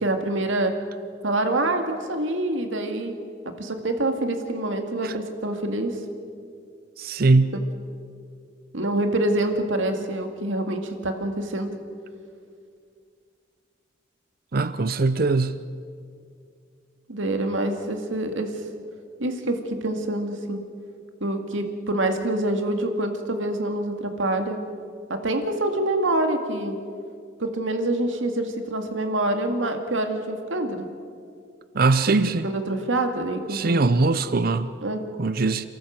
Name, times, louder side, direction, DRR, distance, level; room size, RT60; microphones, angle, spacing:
voice 1, 0.0-0.7 1.2-3.1 3.6-6.0 7.5-7.6 8.7-11.7 17.1-18.5 19.2-20.6 21.2-24.6 25.1-26.8 27.4-30.9 32.4-33.9 34.8-35.0, right 1 dB, 85° right, 2.1 m, -26 dB
voice 2, 7.0-7.5 14.5-15.6 31.7-32.5 33.5-34.7 35.2-35.7, right 3 dB, 50° right, 0.6 m, -21 dB
28.5 x 13.5 x 7.5 m
head